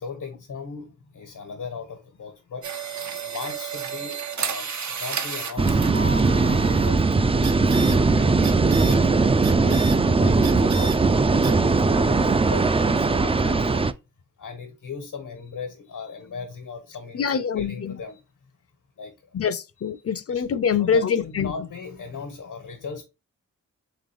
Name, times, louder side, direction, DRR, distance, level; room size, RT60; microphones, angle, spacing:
voice 1, 0.0-9.3 9.7-13.9 14.4-18.5 19.0-19.3 20.3-20.4 20.8-23.0, left 5 dB, 85° left, 1.3 m, -38 dB
sound 1, 2.6-6.9 7.4-8.0 8.4-9.0 9.4-10.0 10.4-11.0 11.4-11.5, right 6 dB, 65° right, 0.8 m, -32 dB
sound 2, 5.6-13.9, right 3 dB, 20° right, 0.4 m, -20 dB
voice 2, 17.1-18.0 19.3-21.5, left 6 dB, 50° left, 0.6 m, -24 dB
3.8 x 3.6 x 3.4 m
cardioid pair, 60°, 31 cm